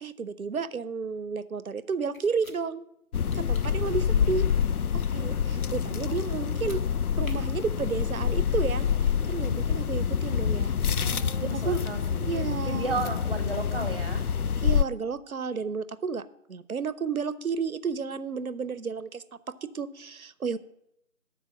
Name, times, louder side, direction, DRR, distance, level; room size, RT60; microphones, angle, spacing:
voice 1, 0.0-2.8 3.3-4.5 4.9-6.8 7.1-8.9 9.3-10.7 11.4-11.8 12.3-12.9 14.6-20.6, right 5 dB, 75° right, 16 dB, 0.7 m, -32 dB
sound 1, 2.1-2.6 3.3-3.8 6.5-6.8 7.2-7.4, left 2 dB, 70° left, 1.5 m, -48 dB
sound 2, 3.1-14.8, left 7 dB, 85° left, 0.5 m, -27 dB
voice 2, 3.8-4.5 11.0-14.2, right 2 dB, 25° right, 6 dB, 0.8 m, -35 dB
12.5 x 4.6 x 7.1 m, 0.80 s
figure-of-eight pair, 160°, 43 cm